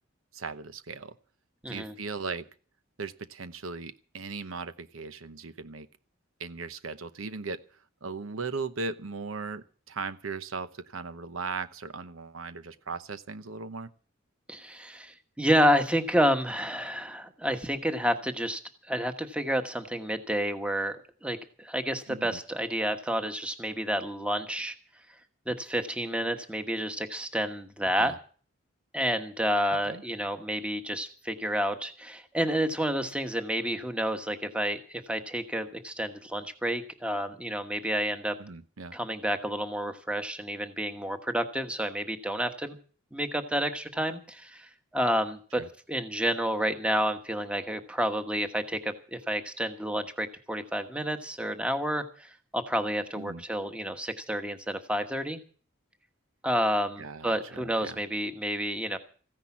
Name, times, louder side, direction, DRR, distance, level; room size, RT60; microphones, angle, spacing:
voice 1, 0.3-1.2 1.7-2.5 3.0-5.9 6.4-7.6 8.0-13.9 22.1-22.4 28.0-28.2 29.8-30.0 38.4-39.0 45.5-45.7 53.2-53.4 57.0-58.0, right 4 dB, 85° right, 13 dB, 0.9 m, -38 dB
voice 2, 1.6-1.9 14.5-18.6 18.9-21.0 21.2-24.7 25.5-28.1 28.9-38.3 38.9-42.8 43.1-45.6 45.9-55.4 56.4-59.0, equal, 5° right, 8 dB, 1.2 m, -30 dB
15.0 x 10.5 x 7.2 m, 0.42 s
head